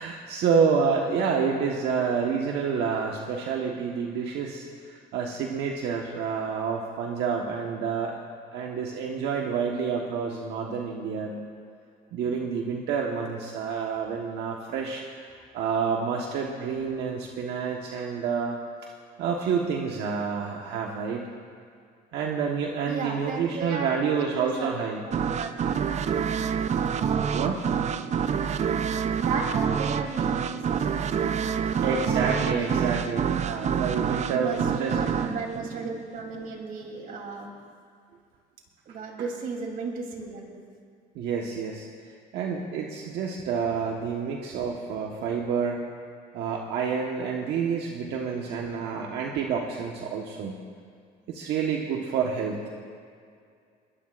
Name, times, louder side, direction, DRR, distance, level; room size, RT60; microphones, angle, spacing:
voice 1, 0.0-8.2 8.5-11.4 12.1-15.0 15.5-18.9 19.2-21.2 22.1-25.0 27.3-27.6 31.5-33.2 33.4-35.4 39.2-39.3 41.1-41.9 42.3-45.8 46.3-50.5 51.3-52.8, right 6 dB, 80° right, 0 dB, 1.3 m, -28 dB
voice 2, 22.9-24.7 25.1-25.8 29.2-32.9 34.3-37.5 38.8-40.6, right 4 dB, 60° right, 1 dB, 3.3 m, -35 dB
sound 1, 25.1-36.6, right 7 dB, 40° right, 0.7 m, -27 dB
21.5 x 21.5 x 2.5 m, 2.2 s
cardioid pair, 110°, 17 cm